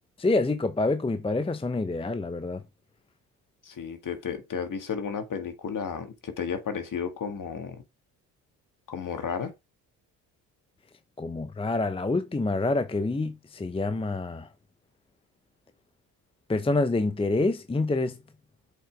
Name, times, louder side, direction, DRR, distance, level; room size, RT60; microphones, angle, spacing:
voice 1, 0.2-2.6 11.2-14.5 16.5-18.2, left 2 dB, 10° left, 0.8 m, -27 dB
voice 2, 3.6-7.8 8.9-9.5, left 6 dB, 45° left, 2.0 m, -33 dB
7.8 x 5.2 x 3.5 m
hypercardioid pair, 60°, 44 cm